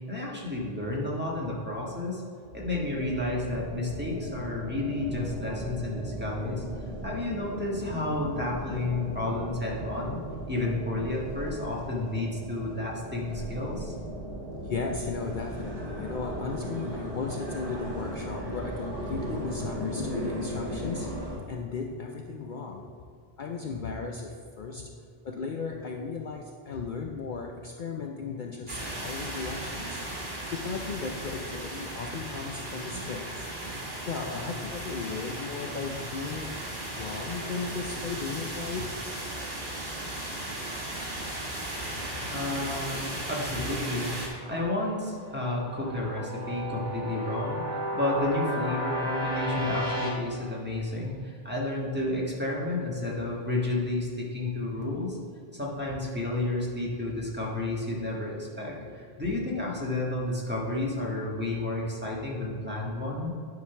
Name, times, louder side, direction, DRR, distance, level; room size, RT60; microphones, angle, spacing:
voice 1, 0.1-2.2 2.5-6.6 7.0-10.2 10.5-13.9 42.3-47.6 47.9-55.2 55.5-63.3, left 2 dB, 10° right, -5 dB, 1.5 m, -31 dB
sound 1, 2.4-21.4, equal, 70° right, 1.7 m, -37 dB
voice 2, 14.6-23.1 23.4-30.0 30.5-33.5 34.1-36.6 36.9-38.9 42.3-42.4 58.8-59.7, left 4 dB, 55° left, 1 dB, 0.7 m, -36 dB
sound 2, 28.7-44.3, right 1 dB, 50° right, 1.8 m, -36 dB
sound 3, 42.5-44.7 45.0-50.1, equal, 25° left, 2.1 m, -34 dB
9.9 x 3.8 x 5.7 m, 2.2 s
omnidirectional pair, 1.0 m